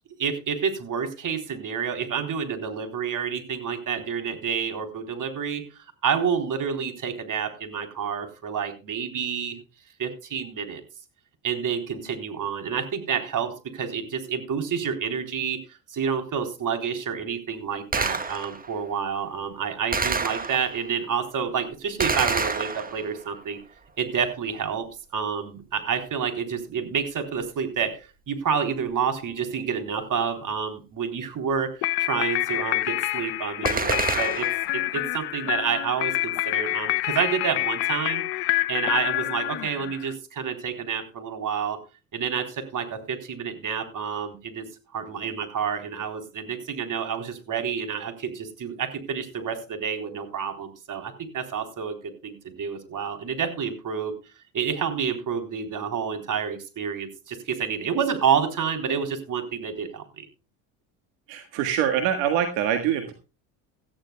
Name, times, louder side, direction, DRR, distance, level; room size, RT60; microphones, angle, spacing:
voice 1, 0.2-9.6 10.0-10.8 11.4-23.6 24.0-34.5 34.7-41.8 42.1-44.6 44.9-52.0 52.2-54.1 54.5-60.3, right 7 dB, 45° right, 6 dB, 3.7 m, -29 dB
Gunshot gunfire, 17.9-18.7 19.9-20.9 22.0-23.3 33.7-34.7, right 4 dB, 20° right, 1.4 m, -27 dB
sound 1, 31.8-40.1, left 19 dB, 65° left, 0.8 m, -27 dB
voice 2, 61.3-63.1, right 9 dB, 75° right, 6 dB, 1.8 m, -24 dB
18.0 x 14.0 x 2.3 m, 0.30 s
supercardioid pair, 80°, 42 cm